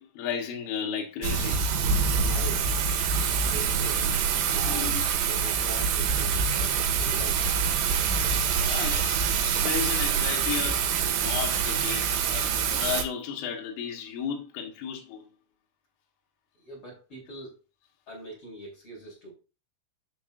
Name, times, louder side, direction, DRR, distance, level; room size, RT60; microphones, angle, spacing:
voice 1, 0.0-1.6 3.2-3.4 4.0-4.2 4.7-5.1 8.6-9.2 9.5-15.3, left 7 dB, 75° left, 3.7 m, -34 dB
Thunder / Rain, 1.2-13.0, right 6 dB, 75° right, 3.4 m, -25 dB
voice 2, 2.3-2.8 3.1-4.0 4.3-4.9 5.3-7.5 16.6-17.6 18.1-19.3, right 1 dB, 25° left, 4.7 m, -42 dB
13.0 x 5.5 x 2.6 m
omnidirectional pair, 5.8 m